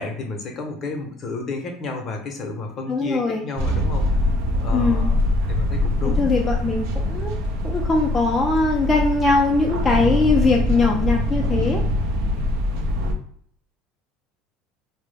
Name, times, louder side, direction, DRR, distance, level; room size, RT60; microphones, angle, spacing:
voice 1, 0.0-4.1 4.6-5.2 5.5-6.3, left 3 dB, 40° left, 3 dB, 0.7 m, -31 dB
voice 2, 2.9-3.4 4.7-5.1 6.2-7.3 7.6-11.8, left 3 dB, 20° left, -1 dB, 0.3 m, -21 dB
sound 1, 3.6-13.1, left 1 dB, 70° right, 0.4 m, -23 dB
2.2 x 2.0 x 3.2 m, 0.63 s
supercardioid pair, 115°, 0 cm